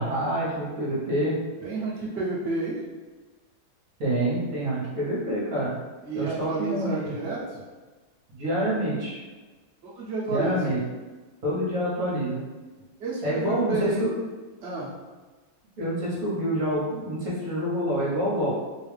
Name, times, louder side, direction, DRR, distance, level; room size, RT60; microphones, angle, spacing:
voice 1, 0.0-1.4 4.0-5.7 6.1-7.1 8.3-9.2 10.3-10.8 11.4-12.4 13.2-14.1 15.8-18.5, right 1 dB, 50° right, -6 dB, 1.3 m, -27 dB
voice 2, 1.6-2.8 6.0-7.6 9.8-10.6 13.0-14.0 14.6-14.9, right 3 dB, 85° right, -5 dB, 0.5 m, -30 dB
3.5 x 2.4 x 3.2 m, 1.3 s
omnidirectional pair, 2.2 m